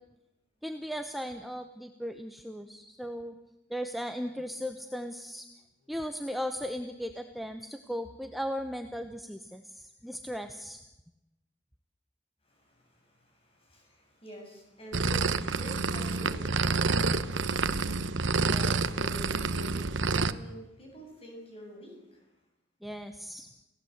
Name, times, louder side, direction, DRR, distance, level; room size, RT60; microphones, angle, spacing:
voice 1, 0.6-3.3 3.7-5.4 5.9-10.8 18.5-18.8 22.8-23.5, equal, ahead, 6 dB, 1.0 m, -37 dB
voice 2, 12.4-22.3, equal, 30° left, 1 dB, 7.7 m, -47 dB
sound 1, 14.9-20.3, right 4 dB, 90° right, 1.0 m, -28 dB
29.5 x 17.5 x 8.1 m, 0.95 s
head